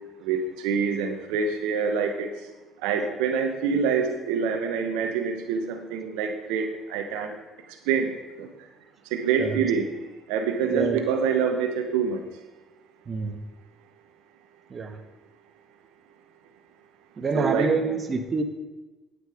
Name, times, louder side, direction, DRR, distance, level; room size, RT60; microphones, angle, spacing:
voice 1, 0.2-2.3 2.8-7.3 7.9-8.1 8.4-8.5 9.1-9.9 10.3-12.2 17.3-17.8, right 6 dB, 85° right, 5 dB, 1.1 m, -26 dB
voice 2, 10.7-11.0 13.1-13.4 14.7-15.0 17.2-18.4, right 4 dB, 40° right, 7 dB, 1.4 m, -26 dB
9.1 x 8.9 x 4.9 m, 1.1 s
supercardioid pair, 65°, 0 cm